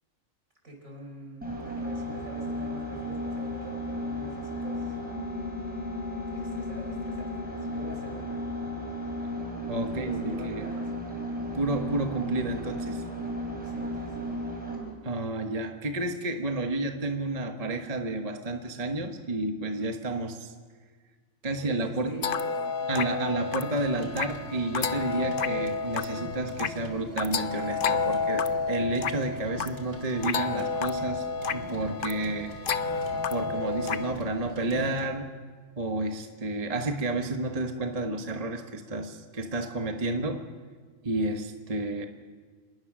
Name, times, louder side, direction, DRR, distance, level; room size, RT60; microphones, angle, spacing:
voice 1, 0.6-5.0 6.3-8.4 9.7-11.0 13.6-14.4 21.6-23.3, right 2 dB, 70° right, 1 dB, 5.2 m, -45 dB
sound 1, 1.4-14.9, equal, 5° right, 5.0 m, -34 dB
voice 2, 9.7-10.7 11.5-13.0 15.0-20.5 21.4-22.2 22.9-32.5 33.3-35.3 35.8-40.5 41.0-42.0, right 2 dB, 30° right, 5 dB, 1.2 m, -31 dB
sound 2, 22.2-34.1, left 5 dB, 50° left, 0.8 m, -31 dB
sound 3, 23.7-35.1, right 2 dB, 90° right, 2.7 m, -43 dB
27.0 x 20.5 x 6.2 m, 1.5 s
omnidirectional pair, 1.5 m